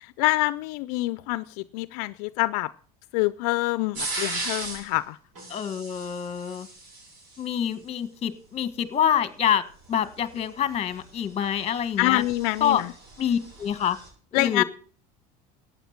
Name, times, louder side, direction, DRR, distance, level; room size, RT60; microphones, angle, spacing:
voice 1, 0.0-2.7 3.1-5.2 12.0-12.9 14.3-14.6, left 20 dB, 75° left, 0.5 m, -26 dB
sound 1, 4.0-4.9 5.4-7.4 10.0-14.1, right 2 dB, 80° right, 7.8 m, -37 dB
voice 2, 5.5-6.7 7.4-9.6 9.9-12.2 12.6-12.8 13.2-14.0 14.3-14.6, left 9 dB, 30° left, 1.4 m, -26 dB
15.0 x 9.3 x 5.8 m
supercardioid pair, 110°, 19 cm